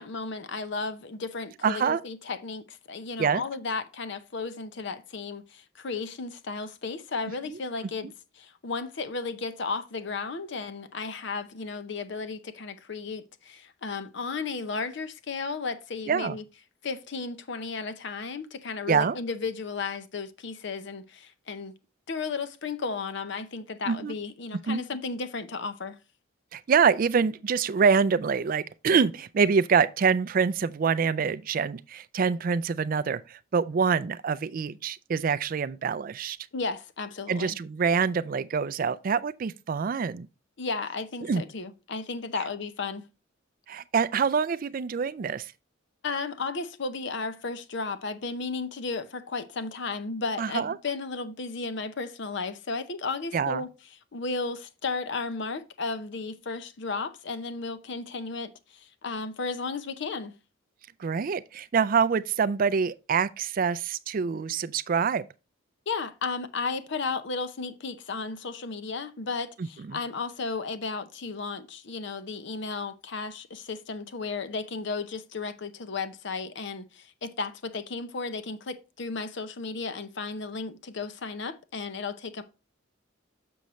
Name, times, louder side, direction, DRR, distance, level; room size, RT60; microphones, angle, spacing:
voice 1, 0.0-16.4 16.8-21.7 22.1-26.0 36.5-37.6 40.6-43.1 46.0-53.7 54.1-60.4 65.9-82.4, left 4 dB, 60° left, 0.6 m, -34 dB
voice 2, 1.6-2.0 3.2-3.4 16.1-16.4 18.9-19.2 23.9-24.2 24.7-24.8 26.5-36.4 37.3-40.3 41.2-41.4 43.7-45.5 50.4-50.8 53.3-53.6 61.0-65.3 69.9-70.0, right 6 dB, 45° right, 0.3 m, -25 dB
6.8 x 6.3 x 3.0 m
head